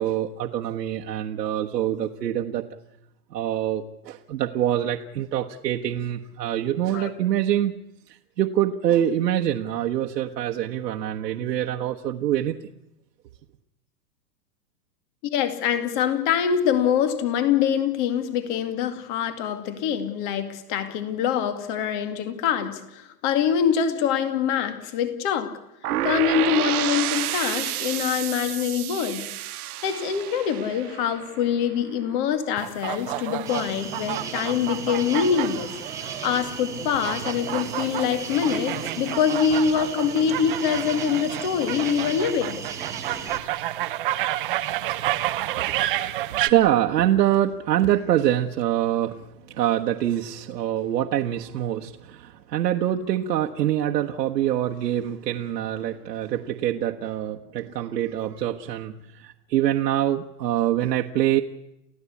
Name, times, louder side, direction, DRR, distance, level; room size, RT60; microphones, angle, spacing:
voice 1, 0.0-2.7 3.3-7.7 8.1-12.6 45.6-61.4, right 12 dB, 85° right, 2 dB, 1.5 m, -25 dB
voice 2, 15.2-25.6 26.0-29.2 29.8-35.7 36.0-42.6 43.1-43.2, left 8 dB, 30° left, 9 dB, 2.3 m, -24 dB
sound 1, 25.8-31.7, right 14 dB, 65° right, 0.9 m, -30 dB
sound 2, 32.6-46.5, right 14 dB, 35° right, 0.9 m, -30 dB
sound 3, 33.5-43.4, right 6 dB, 5° right, 1.4 m, -36 dB
29.5 x 15.5 x 8.5 m, 0.90 s
supercardioid pair, 175°, 48 cm